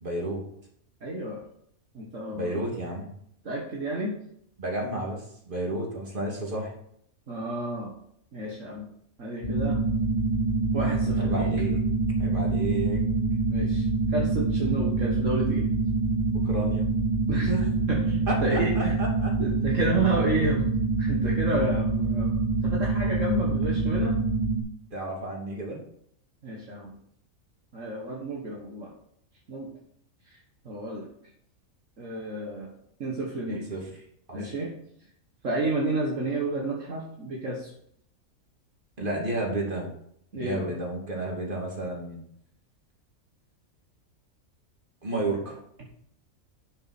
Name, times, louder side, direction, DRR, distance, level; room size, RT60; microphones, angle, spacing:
voice 1, 0.0-0.4 2.3-3.1 4.6-6.7 11.2-11.8 12.2-13.0 16.4-16.9 17.5-17.6 18.3-19.3 24.9-25.8 33.5-33.8 34.3-34.4 39.0-39.9 40.3-42.2 45.0-45.6, right 1 dB, 35° right, -1 dB, 2.8 m, -31 dB
voice 2, 1.0-1.4 1.9-2.6 3.4-4.2 7.3-8.0 8.3-8.9 9.2-9.8 10.7-11.5 13.5-15.7 17.3-17.5 17.9-19.0 19.4-20.7 21.0-24.2 26.4-27.0 27.7-28.9 29.5-29.7 30.3-30.4 30.7-31.1 32.0-32.7 33.0-33.6 34.3-34.7 35.4-37.7 40.3-40.7, right 2 dB, 60° right, -2 dB, 1.9 m, -31 dB
sound 1, 9.4-24.6, right 3 dB, 35° left, 1.6 m, -25 dB
11.5 x 6.4 x 4.4 m, 0.69 s
omnidirectional pair, 1.5 m